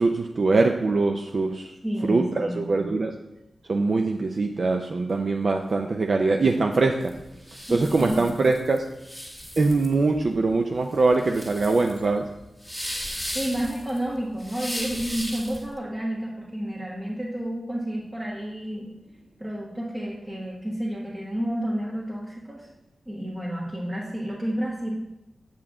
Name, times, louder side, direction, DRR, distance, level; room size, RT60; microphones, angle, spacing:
voice 1, 0.0-1.7 2.0-3.1 3.7-7.1 7.7-8.8 9.6-12.2, right 3 dB, 55° right, 4 dB, 0.5 m, -22 dB
voice 2, 1.8-2.9 7.7-8.3 13.3-18.9 19.4-22.7 23.1-24.9, right 1 dB, 20° right, -5 dB, 1.3 m, -30 dB
sound 1, 7.0-15.7, equal, ahead, 1.7 m, -36 dB
7.3 x 6.8 x 3.7 m, 0.91 s
wide cardioid pair, 85°, 0 cm